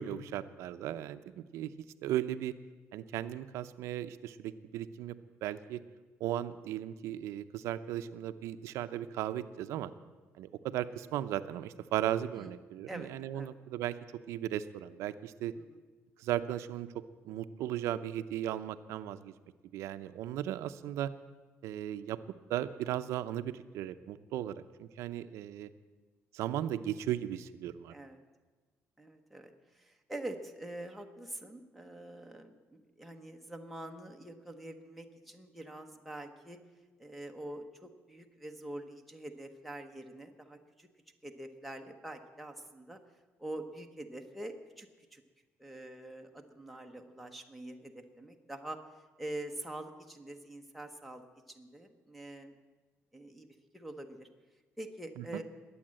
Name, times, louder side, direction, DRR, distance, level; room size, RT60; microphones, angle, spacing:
voice 1, 0.0-1.7 2.0-2.5 2.9-5.2 5.4-5.8 6.2-9.9 10.4-15.5 16.2-19.3 19.7-21.1 21.6-22.2 22.5-25.7 26.3-27.9 55.2-55.4, right 12 dB, 85° right, 11 dB, 0.6 m, -36 dB
voice 2, 12.9-13.5 15.5-15.8 27.9-28.2 29.0-36.6 37.0-40.9 41.2-43.0 43.4-45.2 45.6-48.8 49.2-51.2 51.5-52.5 53.1-53.5 53.7-54.3 54.8-55.4, right 1 dB, ahead, 2 dB, 1.0 m, -45 dB
21.5 x 8.7 x 7.6 m, 1.3 s
cardioid pair, 175°, 5 cm